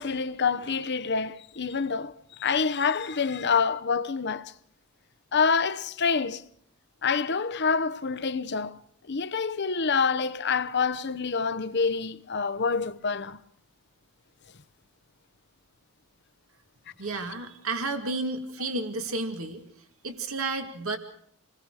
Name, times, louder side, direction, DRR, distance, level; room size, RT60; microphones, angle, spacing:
voice 1, 0.0-2.1 2.4-4.5 5.3-6.4 7.0-8.8 9.1-13.4, left 5 dB, 50° left, 0.9 m, -27 dB
voice 2, 17.0-19.6 20.0-21.0, right 3 dB, 65° right, 2.4 m, -31 dB
28.5 x 20.5 x 4.9 m
head